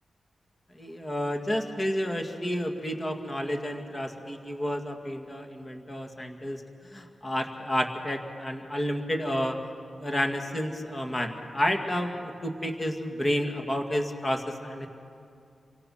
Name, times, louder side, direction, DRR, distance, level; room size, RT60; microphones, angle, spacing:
voice 1, 0.8-6.6 6.9-9.6 10.0-14.9, equal, 20° left, 3 dB, 2.2 m, -30 dB
29.5 x 25.0 x 5.9 m, 2.4 s
wide cardioid pair, 115°, 0 cm